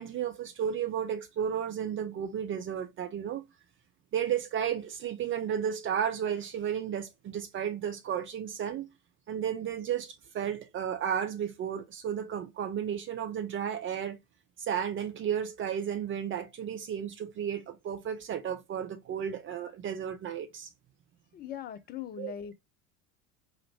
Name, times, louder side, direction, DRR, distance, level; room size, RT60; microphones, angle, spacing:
voice 1, 0.0-3.4 4.1-8.9 9.3-14.2 14.6-20.7 22.2-22.3, right 8 dB, 30° right, 0.6 m, -33 dB
voice 2, 21.3-22.5, left 9 dB, 20° left, 0.5 m, -40 dB
3.8 x 3.2 x 2.7 m
figure-of-eight pair, 70°, 44 cm